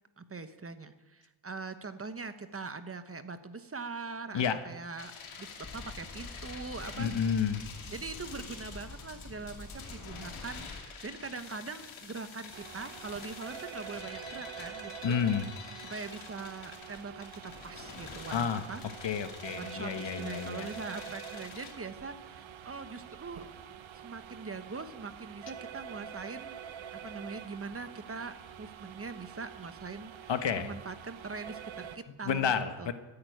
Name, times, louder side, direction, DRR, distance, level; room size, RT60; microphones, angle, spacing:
voice 1, 0.2-5.1 5.4-7.2 7.9-15.2 15.8-18.8 19.6-23.5 24.0-26.6 27.0-32.9, right 4 dB, 30° right, 10 dB, 1.1 m, -42 dB
sound 1, 5.0-21.7, left 6 dB, 90° left, 2.6 m, -48 dB
sound 2, 5.6-10.8, left 2 dB, 40° left, 5.6 m, -47 dB
voice 2, 7.0-7.6 15.0-15.5 18.3-18.6 19.0-20.7 30.3-30.7 32.2-32.9, left 7 dB, 65° left, 9 dB, 1.4 m, -30 dB
sound 3, 12.5-32.0, right 8 dB, 75° right, 1.1 m, -46 dB
14.5 x 8.8 x 9.3 m, 1.1 s
cardioid pair, 105°, 47 cm